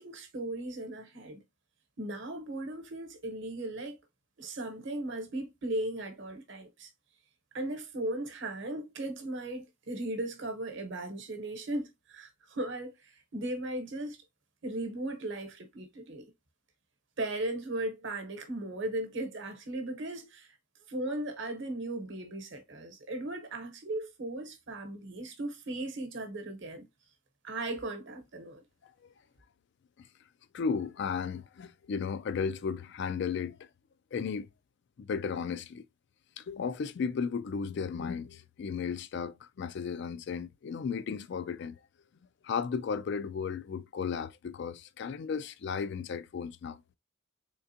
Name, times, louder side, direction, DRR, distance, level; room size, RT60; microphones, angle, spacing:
voice 1, 0.0-1.4 2.0-4.0 4.4-6.9 7.5-14.2 14.6-16.2 17.2-20.6 20.9-26.9 27.4-28.6, right 1 dB, 60° right, 1.0 m, -37 dB
voice 2, 28.8-29.1 30.0-30.1 30.5-33.6 34.1-34.5 35.0-35.8 36.4-41.8 42.4-46.8, left 6 dB, 55° left, 0.3 m, -34 dB
3.7 x 3.4 x 2.7 m
head